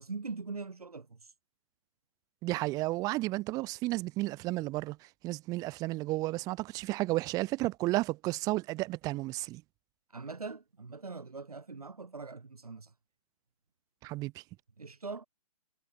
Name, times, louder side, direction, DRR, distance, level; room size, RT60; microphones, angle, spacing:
voice 1, 0.0-1.3 10.1-12.9 14.8-15.3, right 4 dB, 85° right, 2.0 m, -42 dB
voice 2, 2.4-9.6 14.0-14.4, right 19 dB, 20° right, 1.1 m, -32 dB
figure-of-eight pair, 140°, 19 cm